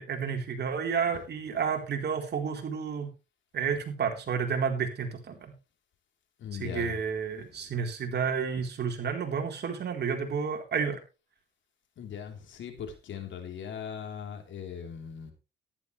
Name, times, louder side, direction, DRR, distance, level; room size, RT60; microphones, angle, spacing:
voice 1, 0.0-3.1 3.5-5.5 6.6-11.0, right 6 dB, 55° right, 3 dB, 4.0 m, -31 dB
voice 2, 6.4-6.9 7.4-7.7 12.0-15.3, left 8 dB, 70° left, 4 dB, 3.8 m, -40 dB
14.0 x 12.0 x 3.3 m, 0.30 s
cardioid pair, 90°, 20 cm